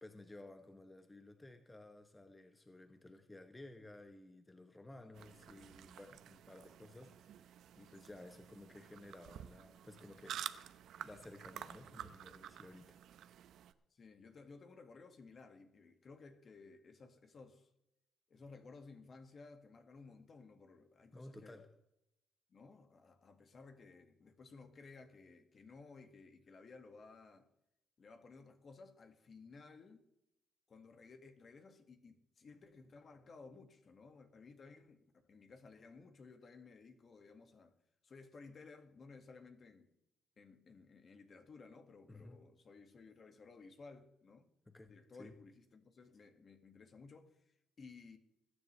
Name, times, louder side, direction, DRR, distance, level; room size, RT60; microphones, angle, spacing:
voice 1, 0.0-7.5 7.8-13.0 21.1-21.7 42.1-42.4 44.7-44.9 45.2-45.3, left 2 dB, 15° left, 1.1 m, -55 dB
voice 2, 4.9-5.6 13.9-17.7 18.3-21.6 22.5-27.5 28.0-30.0 30.7-37.8 38.0-39.9 40.4-44.5 44.9-48.2, left 4 dB, 45° left, 1.9 m, -57 dB
sound 1, 5.1-13.7, right 10 dB, 75° right, 0.8 m, -51 dB
21.5 x 10.0 x 3.3 m
cardioid pair, 90°, 0 cm